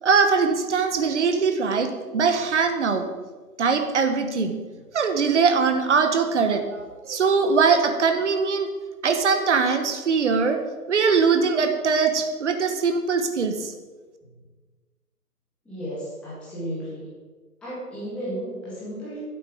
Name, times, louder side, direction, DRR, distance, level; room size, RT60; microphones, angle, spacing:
voice 1, 0.0-3.1 3.6-4.6 4.9-8.7 9.0-10.6 10.9-13.7, right 5 dB, 45° right, 6 dB, 1.3 m, -21 dB
voice 2, 15.6-17.1 17.6-19.2, equal, ahead, -11 dB, 1.7 m, -34 dB
11.5 x 8.4 x 4.9 m, 1.4 s
hypercardioid pair, 160°, 49 cm